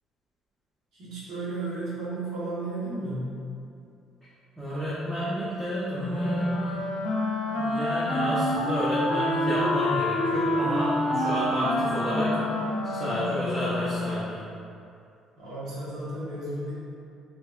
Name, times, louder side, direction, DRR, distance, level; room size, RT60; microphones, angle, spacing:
voice 1, 0.9-3.3 15.4-16.7, right 2 dB, 70° right, -9 dB, 1.2 m, -33 dB
voice 2, 4.6-6.8 7.5-12.4 12.8-14.4, equal, 5° right, -11 dB, 0.8 m, -30 dB
Wind instrument woodwind instrument, 6.0-14.2, left 1 dB, 80° left, 0.5 m, -27 dB
3.2 x 3.2 x 2.4 m, 2.5 s
supercardioid pair, 85°, 0 cm